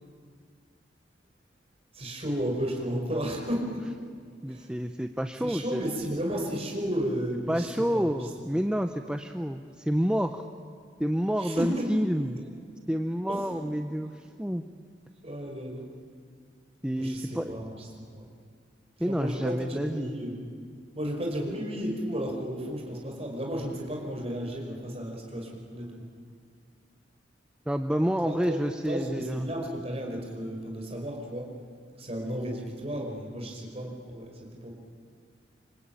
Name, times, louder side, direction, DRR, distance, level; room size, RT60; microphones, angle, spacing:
voice 1, 1.9-3.8 4.5-4.7 5.4-8.3 11.4-12.0 13.3-13.8 15.2-15.9 17.0-18.2 19.0-20.3 21.0-26.1 28.2-28.6 28.9-31.5 32.0-34.7, equal, 35° right, 1 dB, 5.3 m, -33 dB
voice 2, 4.4-5.8 7.5-10.5 11.0-12.4 12.9-14.7 16.8-17.6 19.0-20.1 27.7-29.5, equal, 5° right, 6 dB, 0.7 m, -29 dB
26.5 x 25.0 x 9.0 m, 2.1 s
head